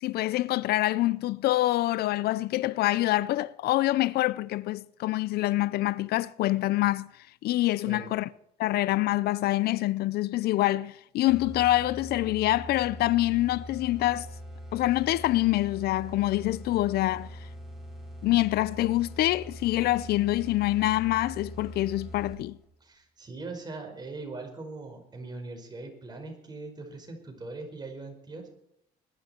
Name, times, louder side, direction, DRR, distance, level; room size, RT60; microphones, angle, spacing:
voice 1, 0.0-7.1 7.4-8.3 8.6-14.3 14.7-17.4 18.2-22.6, left 16 dB, 70° left, 0.5 m, -26 dB
sound 1, 11.3-22.7, equal, ahead, 5.1 m, -42 dB
voice 2, 22.8-28.5, right 3 dB, 25° right, 5.2 m, -41 dB
21.5 x 11.5 x 4.4 m
cardioid pair, 110°, 17 cm